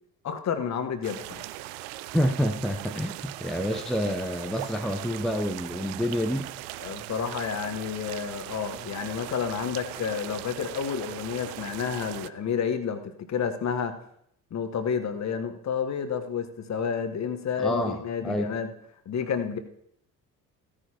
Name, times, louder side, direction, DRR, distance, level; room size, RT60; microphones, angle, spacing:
voice 1, 0.2-1.5 6.8-13.9 14.5-18.7 19.0-19.6, left 7 dB, 35° left, 8 dB, 1.3 m, -30 dB
sound 1, 1.0-12.3, right 17 dB, 55° right, 0.6 m, -39 dB
voice 2, 2.1-6.5 17.6-18.0 18.2-18.5, equal, ahead, 5 dB, 0.7 m, -28 dB
16.0 x 9.8 x 3.0 m, 0.72 s
figure-of-eight pair, 55°, 47 cm